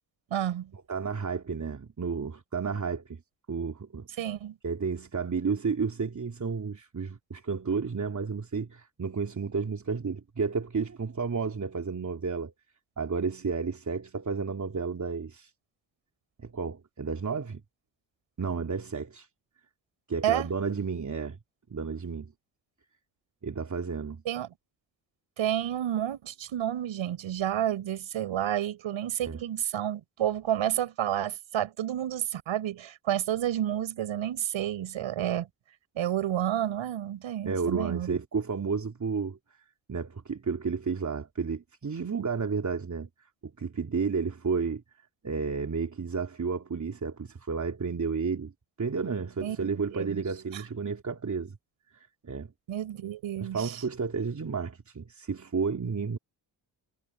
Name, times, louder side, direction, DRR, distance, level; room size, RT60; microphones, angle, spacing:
voice 1, 0.3-0.7 4.2-4.6 20.2-20.5 24.3-24.5 25.4-35.5 35.9-38.2 49.4-50.2 50.5-50.6 52.7-53.8, right 11 dB, 85° right, 5.7 m, -30 dB
voice 2, 0.9-3.2 3.5-4.1 4.6-12.5 13.0-15.5 16.4-17.6 18.4-19.3 20.1-21.4 21.7-22.3 23.4-24.2 29.2-29.4 37.4-39.4 39.9-43.1 43.4-44.8 45.2-48.5 48.8-51.6 51.9-52.5 53.4-56.2, right 5 dB, 40° right, 3.3 m, -32 dB
cardioid pair, 75°, 46 cm